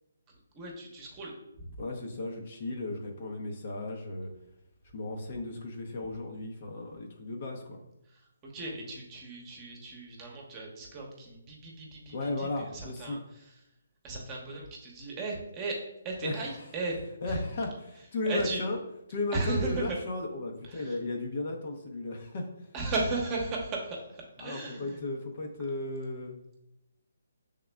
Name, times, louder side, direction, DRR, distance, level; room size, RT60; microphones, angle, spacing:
voice 1, 0.5-1.8 8.1-13.5 14.0-15.8 16.0-17.0 17.3-17.4 18.2-18.6 19.3-20.0 20.6-21.0 22.7-25.0, right 3 dB, 20° right, -2 dB, 1.0 m, -36 dB
voice 2, 1.8-4.3 4.9-7.8 12.1-13.2 16.2-16.5 17.2-18.8 19.1-22.5 24.4-26.4, left 2 dB, 50° left, 2 dB, 0.8 m, -35 dB
5.8 x 3.7 x 2.2 m, 0.84 s
figure-of-eight pair, 150°, 0 cm